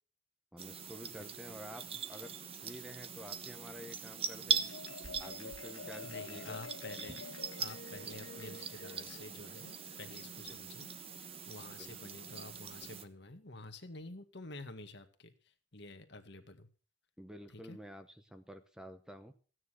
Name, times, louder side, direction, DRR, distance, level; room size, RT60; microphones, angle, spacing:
voice 1, 0.5-4.7 5.2-6.6 10.4-10.6 11.8-11.9 17.2-19.3, equal, 5° right, 8 dB, 0.8 m, -50 dB
sound 1, 0.6-13.0, right 7 dB, 30° right, 1.0 m, -41 dB
Marimba xylophone, 4.2-10.9, left 4 dB, 90° left, 1.7 m, -50 dB
voice 2, 6.0-7.2 7.6-10.9 11.2-15.3 15.7-16.7 17.5-17.8, left 2 dB, 55° left, 8 dB, 1.8 m, -49 dB
16.0 x 9.6 x 6.3 m, 0.39 s
head